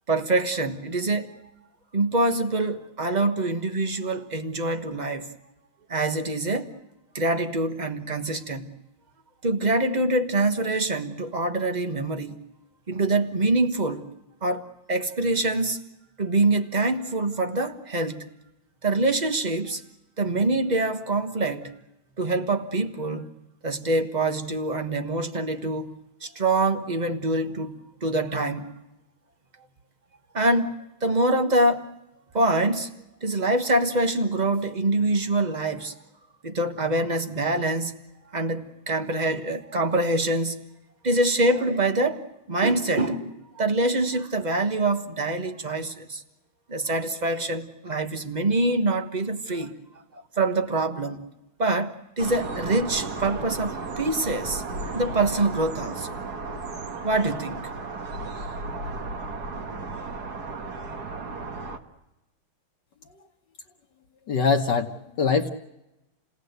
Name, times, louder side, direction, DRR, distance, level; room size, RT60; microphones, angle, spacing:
voice 1, 0.1-1.4 1.9-5.3 5.9-6.7 7.1-8.7 9.4-12.4 12.9-14.1 14.4-14.6 14.9-15.8 16.2-18.2 18.8-19.8 20.2-21.7 22.2-23.3 23.6-25.9 26.2-27.8 28.0-28.7 30.3-31.8 32.3-32.9 33.2-35.9 36.4-37.9 38.3-40.6 41.0-42.2 42.5-46.2 46.7-49.7 50.4-51.2 51.6-56.2 57.0-57.6, right 2 dB, 25° right, 1.1 m, -25 dB
sound 1, 52.2-61.8, right 3 dB, 50° right, 1.9 m, -34 dB
voice 2, 64.3-65.5, left 5 dB, 60° left, 1.6 m, -23 dB
29.0 x 18.0 x 8.0 m
omnidirectional pair, 2.3 m